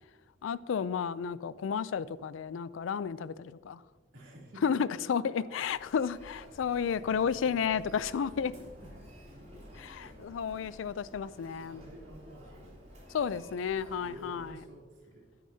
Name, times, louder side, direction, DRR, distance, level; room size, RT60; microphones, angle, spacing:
voice 1, 0.4-3.8 4.6-8.5 9.9-11.8 13.1-14.5, left 7 dB, 85° left, 0.4 m, -32 dB
voice 2, 4.1-4.8 5.2-5.6 6.4-6.9 7.2-7.8 8.2-9.0 9.4-10.2 11.4-12.8 13.2-13.5 14.0-15.2, right 1 dB, 85° right, 3.0 m, -52 dB
Human voice, 5.6-14.6, equal, 35° right, 3.2 m, -52 dB
11.5 x 10.0 x 2.7 m
head